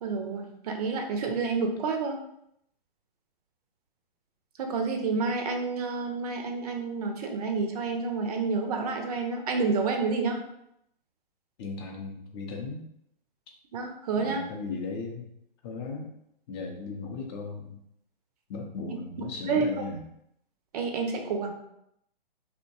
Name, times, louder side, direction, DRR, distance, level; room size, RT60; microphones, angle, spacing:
voice 1, 0.0-2.2 4.6-10.4 13.7-14.4 19.5-19.7 20.7-21.5, right 4 dB, 40° right, 4 dB, 0.5 m, -29 dB
voice 2, 11.6-12.9 14.2-15.3 15.6-16.1 16.5-17.8 18.5-20.0, left 4 dB, 25° left, 1 dB, 0.5 m, -37 dB
2.7 x 2.1 x 2.7 m, 0.76 s
figure-of-eight pair, 125°, 29 cm